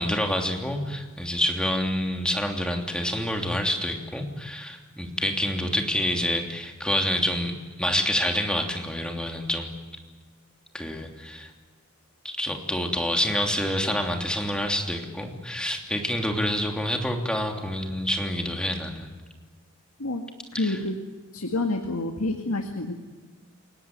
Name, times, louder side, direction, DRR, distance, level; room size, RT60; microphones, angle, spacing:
voice 1, 0.0-9.7 10.7-11.5 12.2-19.1 20.5-20.8, left 1 dB, 5° left, 2 dB, 3.1 m, -27 dB
voice 2, 20.5-21.0 21.3-22.9, left 2 dB, 85° left, 4 dB, 2.1 m, -28 dB
29.5 x 18.0 x 9.5 m, 1.4 s
head